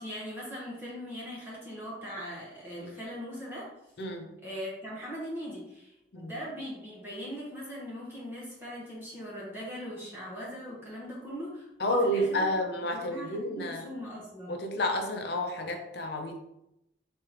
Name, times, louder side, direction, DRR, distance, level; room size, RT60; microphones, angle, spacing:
voice 1, 0.0-3.7 4.4-12.5 12.9-14.6, equal, 10° right, -6 dB, 1.0 m, -40 dB
voice 2, 4.0-4.3 6.1-6.3 11.8-13.8 14.5-16.4, left 1 dB, 55° left, 4 dB, 0.6 m, -30 dB
3.5 x 3.3 x 2.9 m, 0.84 s
head